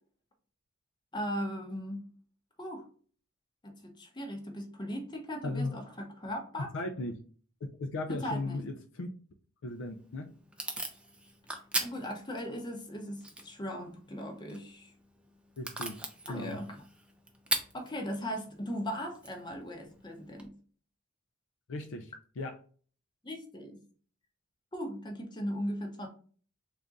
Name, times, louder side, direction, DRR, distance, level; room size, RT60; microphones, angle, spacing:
voice 1, 1.1-2.1 2.6-2.8 3.6-6.7 8.1-8.6 11.8-14.9 16.3-16.7 17.7-20.5 23.2-23.8 24.7-26.1, equal, 20° left, 2 dB, 0.8 m, -38 dB
voice 2, 5.4-5.8 6.6-7.2 7.6-9.1 9.6-10.4 15.6-16.0 16.3-16.6 21.7-22.6, left 2 dB, 60° left, 5 dB, 0.4 m, -37 dB
Packing tape duct tape / Tearing, 9.7-20.5, right 2 dB, 5° right, 0.4 m, -41 dB
3.6 x 2.4 x 3.9 m, 0.42 s
head